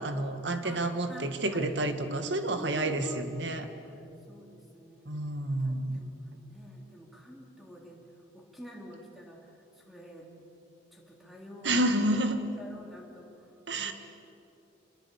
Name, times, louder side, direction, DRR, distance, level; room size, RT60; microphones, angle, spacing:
voice 1, 0.0-3.7 5.1-6.0 11.6-12.4 13.7-13.9, right 1 dB, 70° right, 8 dB, 1.9 m, -29 dB
voice 2, 0.6-1.7 2.5-3.3 3.8-4.0 4.3-5.1 5.6-6.1 6.4-8.0 8.3-10.3 10.9-12.1 12.6-13.9, equal, ahead, -1 dB, 3.8 m, -48 dB
26.0 x 21.5 x 8.5 m, 2.7 s
head